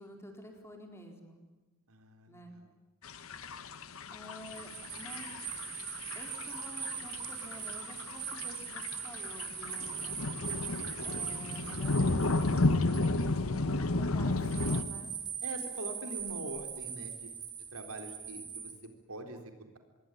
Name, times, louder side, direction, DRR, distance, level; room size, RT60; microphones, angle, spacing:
voice 1, 0.0-1.4 2.3-2.5 4.1-5.7 6.1-15.1, equal, 10° left, 3 dB, 4.3 m, -50 dB
voice 2, 1.9-2.7 15.4-17.3 17.7-19.8, right 2 dB, 90° right, 5 dB, 4.0 m, -44 dB
sound 1, 3.0-14.8, left 2 dB, 80° left, 1.4 m, -33 dB
sound 2, 4.3-13.6 14.4-18.8, right 7 dB, 20° right, 3.8 m, -41 dB
26.0 x 21.5 x 9.9 m, 1.2 s
head